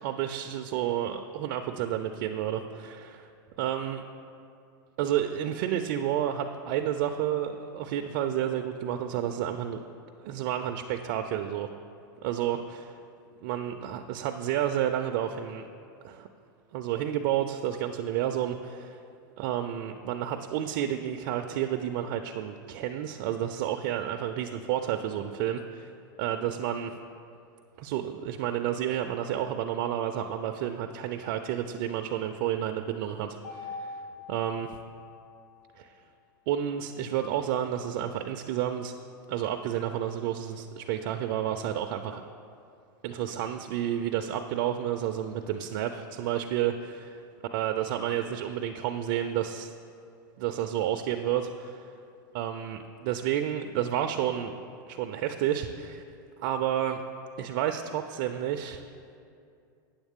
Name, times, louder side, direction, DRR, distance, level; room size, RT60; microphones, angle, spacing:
voice 1, 0.0-3.3 3.6-4.0 5.0-9.8 10.2-11.7 12.2-13.0 13.4-15.7 16.0-16.3 16.7-19.0 19.4-25.9 26.2-26.9 27.8-34.0 34.3-34.8 35.8-35.9 36.5-38.9 39.3-42.3 43.0-47.2 47.5-49.7 50.4-51.9 52.3-54.5 54.9-56.0 56.4-57.0 57.4-58.9, right 10 dB, 55° right, 6 dB, 0.4 m, -30 dB
Mallet percussion, 33.4-35.7, left 4 dB, 65° left, 2.0 m, -43 dB
8.8 x 7.2 x 3.6 m, 2.5 s
hypercardioid pair, 115°, 11 cm